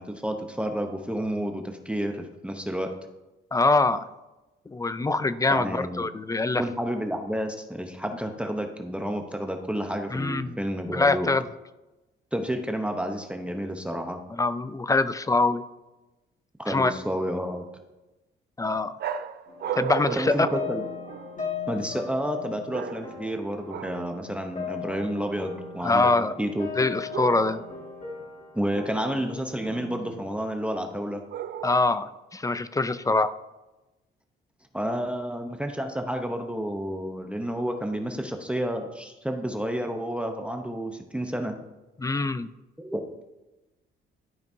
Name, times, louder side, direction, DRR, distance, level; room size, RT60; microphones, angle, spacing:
voice 1, 0.0-2.9 5.5-6.0 6.6-11.3 12.3-14.2 16.6-17.6 20.2-20.8 21.7-26.1 26.4-26.7 28.5-31.2 34.7-41.6 42.8-43.2, equal, 5° right, 4 dB, 0.8 m, -30 dB
voice 2, 3.5-4.1 4.7-6.6 10.1-10.6 10.9-11.4 14.3-15.6 16.7-16.9 18.6-19.0 19.7-20.5 25.8-26.4 26.8-27.6 31.6-33.3 42.0-42.5, left 3 dB, 15° left, 13 dB, 0.4 m, -24 dB
sound 1, 19.0-21.5 22.7-23.3 23.7-24.2 27.1-27.8 31.3-32.0, right 9 dB, 55° right, 0.5 m, -35 dB
sound 2, 19.5-30.3, left 6 dB, 40° left, 1.9 m, -38 dB
12.0 x 5.2 x 2.7 m, 1.0 s
cardioid pair, 90°, 20 cm